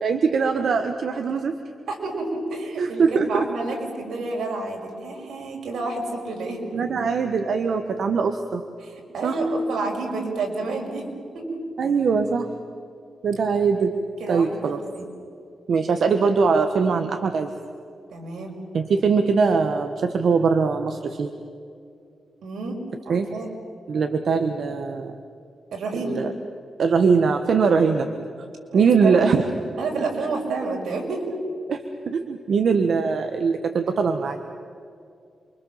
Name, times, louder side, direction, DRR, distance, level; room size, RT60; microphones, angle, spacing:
voice 1, 0.0-1.5 2.8-3.5 6.7-8.6 9.2-9.4 11.8-12.5 13.2-14.0 14.3-14.8 15.7-17.5 18.7-21.3 23.1-23.3 23.9-25.1 26.0-26.3 26.8-28.1 28.7-29.4 31.7-31.8 32.1-34.4, right 5 dB, 65° right, 6 dB, 1.4 m, -21 dB
voice 2, 1.9-6.6 8.8-11.1 11.3-11.6 14.2-14.5 14.8-15.1 18.1-18.5 22.4-22.8 23.0-23.5 25.7-26.2 27.7-27.9 28.7-29.2 29.8-31.3, right 3 dB, 90° right, 1 dB, 5.9 m, -29 dB
28.5 x 24.5 x 7.4 m, 2.4 s
wide cardioid pair, 130°, 0 cm